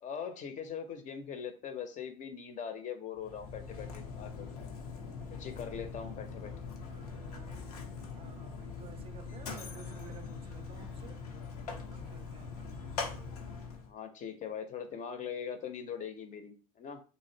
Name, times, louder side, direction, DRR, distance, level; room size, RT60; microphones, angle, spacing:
voice 1, 0.0-4.6 5.3-6.5 13.9-17.0, left 7 dB, 40° left, 0.6 m, -41 dB
Mechanisms, 3.2-13.9, left 5 dB, 90° left, 0.5 m, -42 dB
voice 2, 6.9-7.8 8.1-11.2 11.9-13.0, right 7 dB, 30° right, 0.4 m, -54 dB
2.5 x 2.0 x 2.6 m
hypercardioid pair, 75°, 19 cm